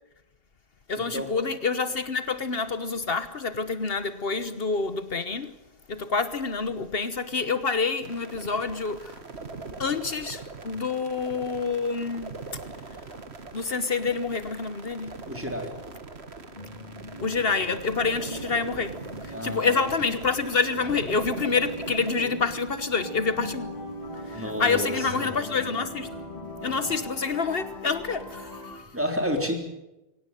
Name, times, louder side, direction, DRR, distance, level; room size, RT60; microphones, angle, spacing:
voice 1, 0.9-5.5 5.9-9.2 9.8-12.4 13.5-15.2 17.2-19.0 19.2-23.7 24.3-26.1 26.6-28.9, left 4 dB, 65° left, 1.4 m, -27 dB
sound 1, 8.0-22.1, right 4 dB, 85° right, 2.0 m, -42 dB
voice 2, 15.3-15.8 19.3-19.8 22.2-22.4 24.3-25.3 28.9-29.5, equal, 10° right, 3.8 m, -30 dB
sound 2, 16.5-27.1, equal, 40° left, 3.9 m, -41 dB
sound 3, 23.0-28.7, left 2 dB, 20° left, 5.4 m, -41 dB
24.0 x 17.5 x 9.2 m
omnidirectional pair, 1.1 m